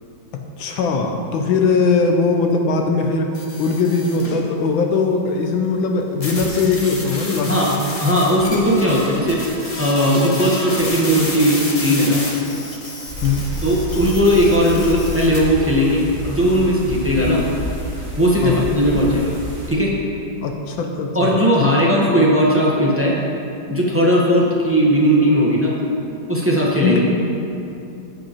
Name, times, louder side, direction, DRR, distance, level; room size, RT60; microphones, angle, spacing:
voice 1, 0.3-3.3 3.6-7.8 10.3-10.4 13.2-13.4 18.4-18.6 20.4-21.7 26.8-27.0, left 4 dB, 80° left, 3 dB, 1.5 m, -20 dB
sound 1, 3.3-4.4 6.2-15.4, left 2 dB, 30° left, 0.7 m, -30 dB
voice 2, 8.0-12.2 13.6-17.4 18.2-19.3 19.7-19.9 21.1-23.2 23.7-25.7 26.3-27.0, equal, 10° right, -5 dB, 0.6 m, -17 dB
sound 2, 13.0-19.7, left 1 dB, 35° right, 2.5 m, -29 dB
15.5 x 5.4 x 2.9 m, 2.7 s
omnidirectional pair, 2.1 m